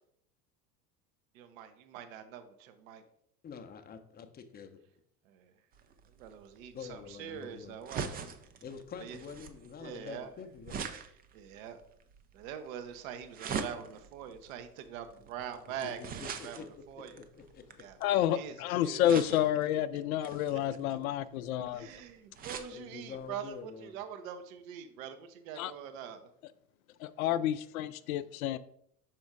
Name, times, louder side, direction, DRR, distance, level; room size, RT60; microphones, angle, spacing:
voice 1, 1.3-3.0 5.2-5.5 6.0-8.1 9.0-9.2 9.8-10.3 11.3-11.8 12.3-17.2 17.8-18.0 18.3-19.0 21.7-26.3, right 8 dB, 55° right, 0.9 m, -44 dB
voice 2, 3.4-4.8 6.7-7.8 8.6-10.9 15.8-16.6 17.1-17.6 22.7-23.9, left 6 dB, 20° left, 0.6 m, -46 dB
sound 1, 5.7-18.3 19.0-19.7 20.2-22.7 23.2-23.3 23.5-23.6, right 6 dB, 20° right, 0.4 m, -43 dB
voice 3, 18.0-21.9 25.6-25.7 27.0-28.6, left 11 dB, 60° left, 0.5 m, -29 dB
6.0 x 4.4 x 3.7 m
figure-of-eight pair, 70°, 48 cm